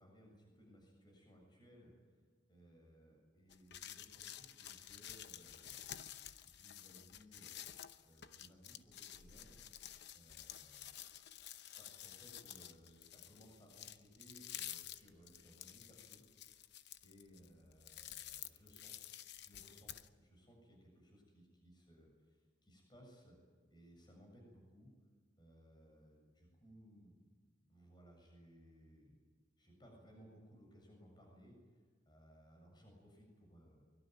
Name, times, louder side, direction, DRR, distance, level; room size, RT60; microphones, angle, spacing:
voice 1, 0.0-2.2 2.5-5.8 6.4-11.0 11.8-16.7 17.0-18.9 19.4-19.9 20.2-23.4 23.7-24.9 25.4-27.3 27.6-29.2 29.6-33.8, equal, 20° left, 1 dB, 7.1 m, -63 dB
sound 1, 3.5-20.1, left 11 dB, 55° left, 0.8 m, -51 dB
24.0 x 22.0 x 9.3 m, 1.5 s
head